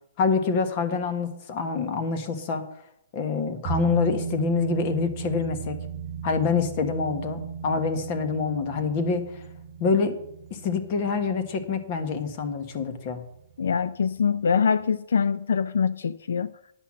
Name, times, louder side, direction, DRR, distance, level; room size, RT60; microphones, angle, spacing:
voice 1, 0.2-2.6 3.1-5.8 6.2-9.4 9.8-10.2 10.5-13.3, left 5 dB, 35° left, 7 dB, 1.4 m, -26 dB
sound 1, 3.6-12.8 13.1-13.2, right 7 dB, 20° right, 1.6 m, -35 dB
voice 2, 13.6-16.5, left 6 dB, 80° left, 15 dB, 0.4 m, -24 dB
10.5 x 5.7 x 7.6 m, 0.79 s
hypercardioid pair, 155°, 0 cm